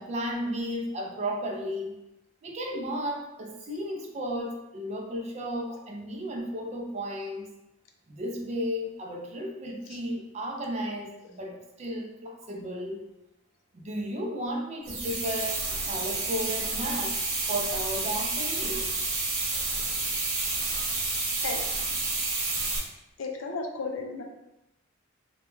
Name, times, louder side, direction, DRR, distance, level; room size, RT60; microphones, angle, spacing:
voice 1, 0.0-1.9 2.4-7.5 8.1-13.0 13.7-17.1 17.5-18.9, equal, 35° right, 0 dB, 0.4 m, -34 dB
sound 1, 14.8-22.8, right 3 dB, 90° right, 0.7 m, -30 dB
voice 2, 21.4-21.8 23.2-24.2, left 3 dB, 75° left, 2 dB, 0.4 m, -34 dB
2.2 x 2.1 x 3.0 m, 0.92 s
head